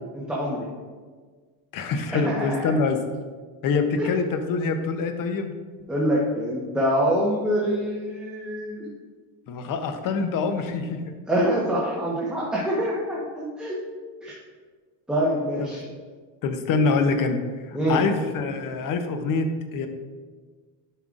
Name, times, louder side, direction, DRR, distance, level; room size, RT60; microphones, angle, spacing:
voice 1, 0.1-0.7 2.2-2.8 4.0-4.1 5.9-8.9 11.3-13.7 14.2-14.3 15.1-15.8 17.7-18.0, equal, ahead, -6 dB, 1.1 m, -25 dB
voice 2, 1.7-3.0 3.6-5.5 9.5-11.0 15.6-15.8 16.4-17.4 17.7-19.5 19.7-19.9, left 4 dB, 45° left, 7 dB, 0.9 m, -25 dB
11.0 x 5.6 x 2.5 m, 1.5 s
supercardioid pair, 125°, 48 cm